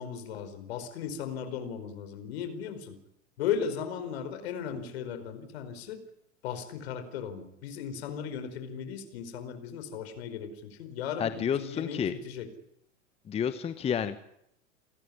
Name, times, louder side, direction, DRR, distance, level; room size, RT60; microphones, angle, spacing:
voice 1, 0.0-3.0 3.4-6.0 6.4-12.5, left 7 dB, 55° left, 9 dB, 4.7 m, -36 dB
voice 2, 11.2-12.1 13.3-14.2, left 8 dB, 15° left, 11 dB, 1.0 m, -30 dB
29.5 x 14.0 x 9.9 m, 0.78 s
figure-of-eight pair, 95°, 39 cm